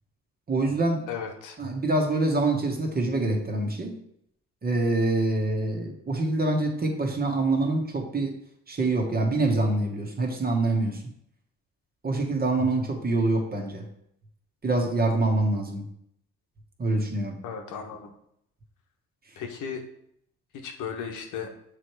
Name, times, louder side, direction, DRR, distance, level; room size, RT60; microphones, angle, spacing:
voice 1, 0.5-1.0 1.6-3.9 4.6-8.3 8.7-11.0 12.0-13.8 14.6-15.8 16.8-17.3, right 2 dB, 30° right, 2 dB, 1.4 m, -25 dB
voice 2, 1.1-1.6 17.4-18.1 19.4-19.8 20.6-21.5, left 7 dB, 85° left, 3 dB, 1.1 m, -35 dB
6.8 x 3.3 x 4.6 m, 0.73 s
cardioid pair, 90°, 30 cm